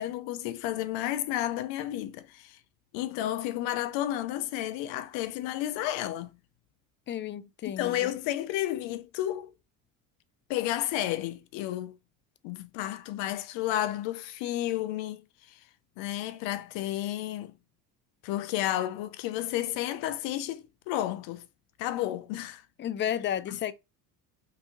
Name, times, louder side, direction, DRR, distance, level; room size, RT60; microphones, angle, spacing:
voice 1, 0.0-2.6 2.9-6.3 7.8-9.5 10.5-12.0 12.4-15.2 15.5-15.6 16.0-17.5 18.2-21.4 21.8-22.6 23.5-23.6, left 13 dB, 65° left, 0.6 m, -32 dB
voice 2, 7.1-8.2 22.8-23.7, left 10 dB, 25° left, 0.3 m, -32 dB
4.0 x 2.7 x 2.4 m
hypercardioid pair, 70°, 49 cm